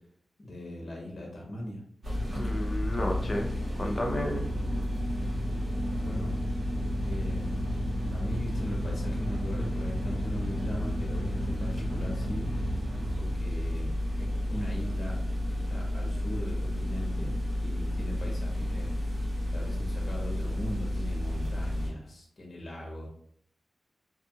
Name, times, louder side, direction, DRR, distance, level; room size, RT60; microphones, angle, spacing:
voice 1, 0.4-1.8 6.0-6.3 6.9-7.6 8.1-12.5 13.1-15.2 15.5-19.0 19.5-23.1, equal, 50° left, -2 dB, 0.8 m, -39 dB
sound 1, 2.0-21.9, equal, 65° right, 1.3 m, -31 dB
voice 2, 2.3-3.5 3.8-4.4, left 1 dB, 30° left, 0 dB, 0.5 m, -32 dB
2.7 x 2.3 x 2.7 m, 0.63 s
wide cardioid pair, 120°, 0 cm